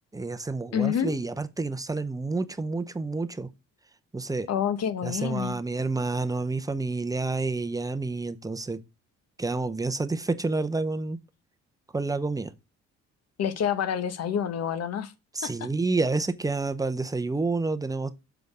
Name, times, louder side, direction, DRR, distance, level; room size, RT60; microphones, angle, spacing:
voice 1, 0.1-3.5 4.1-4.5 5.0-8.8 9.4-11.2 11.9-12.5 15.3-18.2, right 3 dB, 10° right, 0.7 m, -29 dB
voice 2, 0.7-1.2 4.5-5.6 13.4-15.1 15.4-15.7, left 8 dB, 55° left, 1.0 m, -28 dB
6.9 x 4.3 x 4.9 m
cardioid pair, 90°, 30 cm